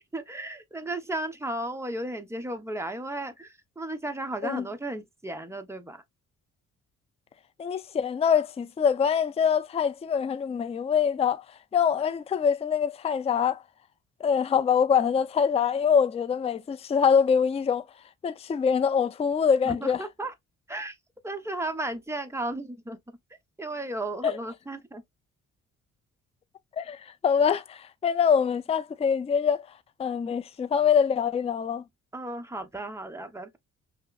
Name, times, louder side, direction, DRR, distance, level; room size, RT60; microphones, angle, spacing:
voice 1, 0.0-6.0 19.6-20.3 20.7-20.9 21.2-23.0 23.6-25.0 32.1-33.6, right 1 dB, 10° right, 0.7 m, -34 dB
voice 2, 7.6-11.4 11.7-13.6 14.2-17.8 18.2-20.0 24.2-24.3 26.8-29.6 30.0-31.8, left 7 dB, 20° left, 0.4 m, -24 dB
5.5 x 2.0 x 2.3 m
cardioid pair, 90°, 30 cm